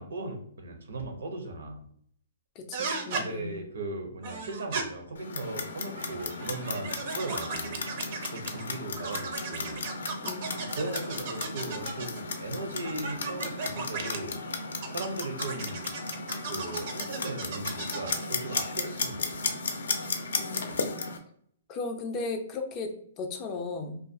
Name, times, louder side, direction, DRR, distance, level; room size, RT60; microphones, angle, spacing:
voice 1, 0.0-1.8 3.1-7.8 8.3-9.8 10.7-14.4 14.9-15.8 16.4-19.4 20.2-20.3, right 2 dB, 80° right, 4 dB, 0.7 m, -38 dB
voice 2, 2.6-3.5 10.2-10.6 20.4-20.8 21.7-24.0, left 3 dB, 20° left, 4 dB, 0.3 m, -36 dB
sound 1, 2.7-3.3 4.2-4.8 5.8-8.6 9.0-12.2 12.8-14.2 14.8-18.3, right 4 dB, 40° right, 0.4 m, -36 dB
Clock, 5.2-21.2, left 4 dB, 85° left, 0.4 m, -35 dB
2.4 x 2.3 x 2.5 m, 0.63 s
hypercardioid pair, 165°, 0 cm